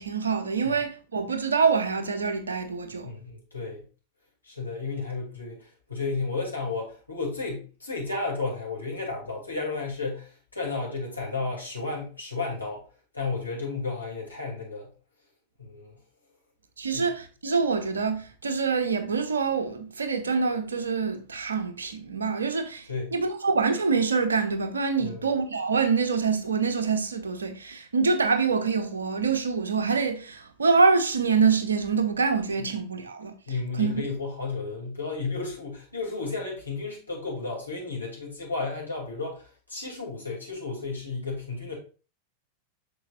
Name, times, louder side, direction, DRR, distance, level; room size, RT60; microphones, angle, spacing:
voice 1, 0.0-3.1 16.8-33.3 33.8-34.1, right 5 dB, 70° right, 1.0 m, -25 dB
voice 2, 3.0-3.8 4.4-12.8 13.1-14.9 15.6-16.0 16.9-17.1 22.9-23.1 25.0-25.3 32.6-32.7 33.5-41.8, left 3 dB, 85° left, 2.7 m, -33 dB
8.2 x 6.3 x 2.4 m
figure-of-eight pair, 90°, 0 cm